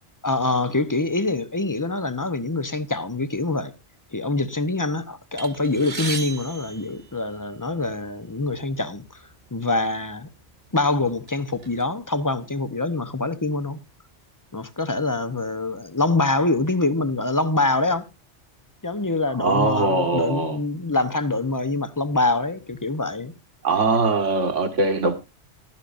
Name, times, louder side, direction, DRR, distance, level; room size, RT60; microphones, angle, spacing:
voice 1, 0.2-3.7 4.1-9.2 9.5-10.3 10.7-13.8 14.5-18.1 18.8-23.3, left 2 dB, 20° left, 0.8 m, -25 dB
sound 1, 5.4-7.7 8.5-8.7 9.0-9.2 10.0-10.2 10.7-11.8, right 4 dB, 35° right, 1.4 m, -36 dB
voice 2, 19.3-20.6 23.6-25.1, right 3 dB, 80° right, 2.2 m, -21 dB
15.0 x 12.0 x 2.6 m
omnidirectional pair, 1.2 m